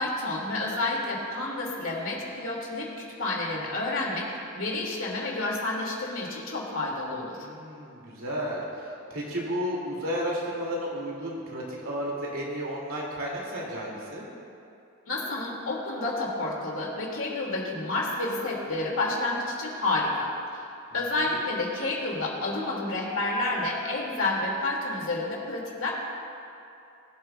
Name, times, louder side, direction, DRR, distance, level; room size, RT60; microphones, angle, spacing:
voice 1, 0.0-4.3 4.5-7.4 15.1-20.3 20.9-25.9, left 2 dB, 70° left, -2 dB, 2.1 m, -29 dB
voice 2, 7.3-14.3 21.2-21.4, equal, 80° right, -4 dB, 2.2 m, -33 dB
20.0 x 8.2 x 2.2 m, 2.7 s
head